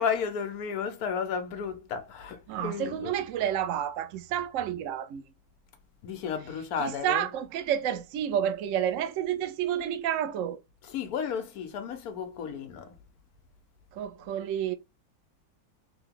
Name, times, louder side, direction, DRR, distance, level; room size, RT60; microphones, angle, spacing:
voice 1, 0.0-3.2 6.0-7.3 10.8-13.0, left 6 dB, 65° left, 1.2 m, -33 dB
voice 2, 2.5-5.2 6.8-10.6 13.9-14.7, right 10 dB, 75° right, 0.7 m, -30 dB
3.5 x 2.8 x 3.7 m
omnidirectional pair, 1.8 m